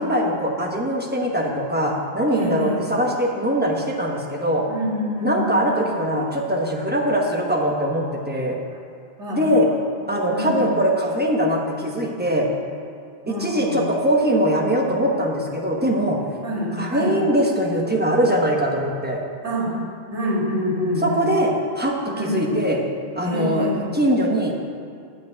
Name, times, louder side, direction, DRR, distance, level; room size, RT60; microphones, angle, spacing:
voice 1, 0.0-4.6 5.2-8.6 9.3-9.7 10.1-12.5 13.3-16.2 16.8-19.2 21.0-22.8 23.2-24.5, equal, 10° right, 0 dB, 1.1 m, -22 dB
voice 2, 2.3-2.8 4.7-6.0 9.2-9.4 10.3-10.6 13.2-13.8 16.4-17.1 19.4-19.8 20.1-21.3 22.1-22.5 23.2-23.8, left 1 dB, 80° right, -4 dB, 2.7 m, -26 dB
9.1 x 5.6 x 8.1 m, 2.3 s
omnidirectional pair, 1.2 m